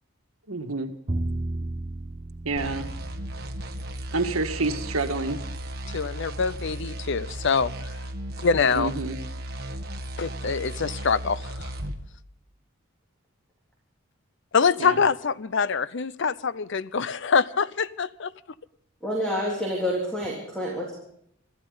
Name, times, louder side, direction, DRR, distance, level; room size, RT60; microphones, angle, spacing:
voice 1, 0.5-0.9 2.4-2.9 4.1-5.4 8.7-9.2 14.8-15.0, right 3 dB, 85° right, 6 dB, 1.7 m, -28 dB
Bowed string instrument, 1.1-7.3, right 1 dB, 30° right, 0.8 m, -36 dB
sound 1, 2.6-12.0, right 1 dB, 50° right, 1.7 m, -35 dB
voice 2, 5.9-7.7 8.4-8.9 10.2-11.7 14.5-18.3, left 5 dB, 55° left, 17 dB, 0.6 m, -24 dB
voice 3, 19.0-20.9, equal, 5° left, -3 dB, 3.6 m, -28 dB
25.5 x 14.5 x 3.9 m, 0.69 s
head